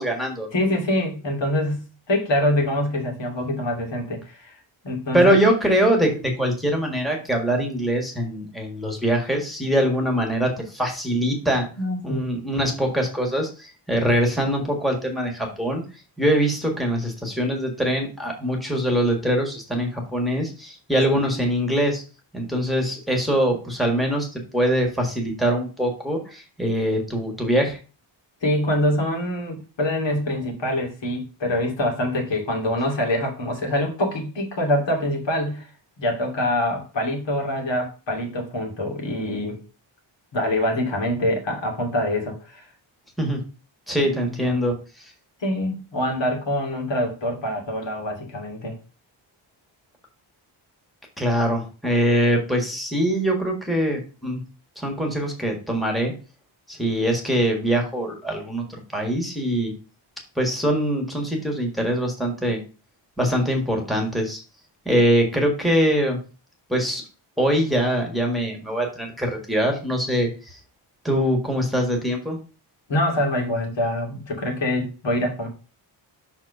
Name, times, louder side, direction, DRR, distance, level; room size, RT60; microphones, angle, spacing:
voice 1, 0.0-0.5 5.1-11.7 12.0-15.8 16.2-22.0 22.3-27.8 43.2-43.4 43.9-45.1 51.2-54.4 54.8-56.1 56.7-59.7 60.3-62.6 63.2-64.4 64.8-66.2 66.7-67.0 67.4-70.6 71.0-72.4, equal, ahead, 1 dB, 1.6 m, -23 dB
voice 2, 0.5-4.6 4.8-5.4 11.8-12.3 28.4-35.7 36.0-39.6 40.3-42.7 44.2-44.5 45.4-48.8 72.9-75.5, left 1 dB, 60° left, 1 dB, 2.5 m, -25 dB
6.0 x 4.3 x 5.4 m, 0.35 s
wide cardioid pair, 155°, 48 cm